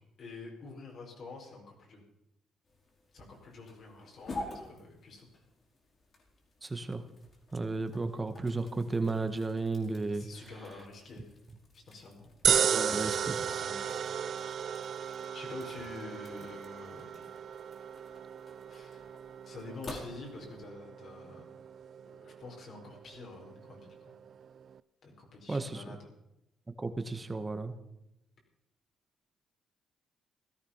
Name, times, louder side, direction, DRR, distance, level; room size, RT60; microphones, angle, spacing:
voice 1, 0.0-2.0 3.1-5.3 10.1-11.3 11.7-12.3 12.7-14.0 15.3-17.3 18.7-19.1 19.4-21.5 22.0-24.0 25.0-26.1, left 3 dB, 60° left, 0 dB, 5.0 m, -48 dB
sound 1, 2.6-20.7, left 2 dB, 45° left, 4.7 m, -50 dB
voice 2, 6.6-7.0 7.5-10.3 12.5-13.4 25.5-26.0 26.8-27.7, right 3 dB, 20° right, 9 dB, 1.7 m, -33 dB
sound 2, 12.4-24.8, right 8 dB, 55° right, 0.5 m, -35 dB
17.0 x 13.0 x 5.8 m, 0.86 s
cardioid pair, 90°, 0 cm